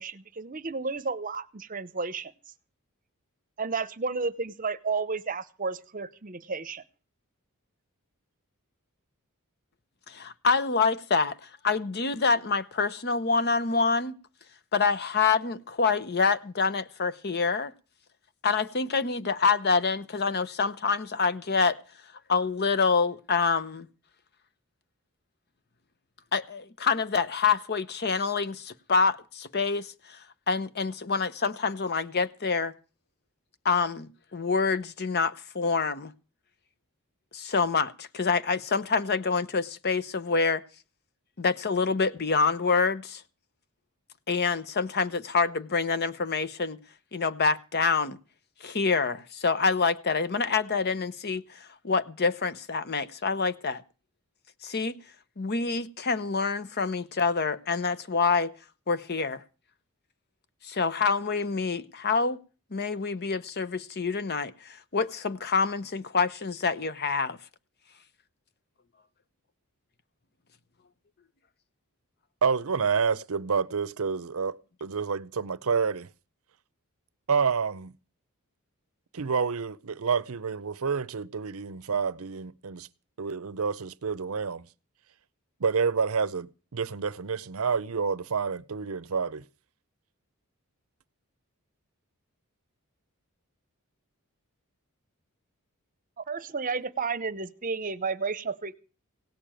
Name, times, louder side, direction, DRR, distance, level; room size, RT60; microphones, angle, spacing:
voice 1, 0.0-2.3 3.6-6.8 96.2-98.7, right 4 dB, 35° right, 0.8 m, -32 dB
voice 2, 10.1-11.3 11.6-14.1 14.7-17.7 18.4-21.8 22.3-23.9 26.3-30.2 30.5-32.7 33.6-36.1 37.3-40.6 41.4-43.2 44.3-46.8 47.1-48.2 48.6-53.8 54.6-55.0 55.4-58.5 58.9-59.4 60.6-62.4 62.7-67.4, left 4 dB, 45° left, 0.8 m, -26 dB
voice 3, 72.4-76.1 77.3-77.9 79.1-82.9 83.2-84.6 85.6-89.4, right 5 dB, 70° right, 0.6 m, -28 dB
17.0 x 6.7 x 9.0 m
head